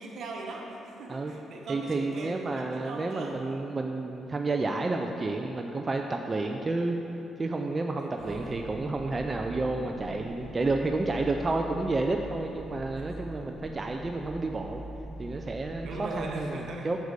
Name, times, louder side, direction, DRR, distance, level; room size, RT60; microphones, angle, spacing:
voice 1, 0.0-3.4 8.0-8.6 13.0-13.3 15.8-16.9, right 2 dB, 65° right, -1 dB, 1.1 m, -40 dB
voice 2, 1.7-7.0 7.4-14.8 15.2-17.0, right 3 dB, 30° right, 3 dB, 0.4 m, -30 dB
sound 1, 8.2-16.4, right 1 dB, 15° right, 1.2 m, -42 dB
6.5 x 4.7 x 6.6 m, 3.0 s
cardioid pair, 90°, 0 cm